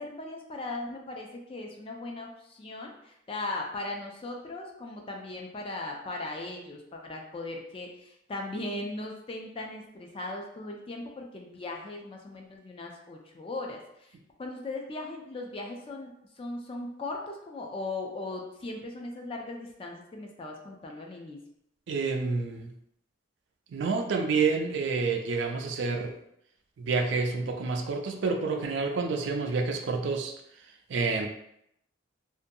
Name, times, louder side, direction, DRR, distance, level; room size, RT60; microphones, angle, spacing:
voice 1, 0.0-14.1 14.4-21.4, left 2 dB, 30° left, 1 dB, 0.3 m, -38 dB
voice 2, 21.9-22.7 23.7-26.1 26.8-30.3 30.9-31.3, right 4 dB, 60° right, 4 dB, 0.3 m, -28 dB
2.5 x 2.2 x 2.6 m, 0.76 s
head